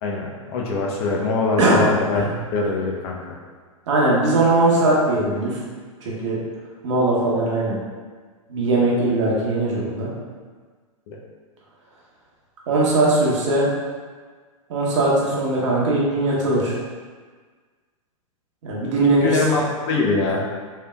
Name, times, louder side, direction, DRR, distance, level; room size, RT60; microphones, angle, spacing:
voice 1, 0.0-2.3 2.5-3.2 11.1-11.2 19.0-20.5, left 3 dB, 45° left, -1 dB, 0.6 m, -23 dB
voice 2, 3.9-5.6 6.0-6.4 6.8-7.8 8.5-10.1 12.7-13.7 14.7-16.8 18.6-19.3, right 2 dB, 55° right, -5 dB, 0.9 m, -20 dB
3.3 x 2.7 x 2.2 m, 1.5 s
figure-of-eight pair, 105°, 18 cm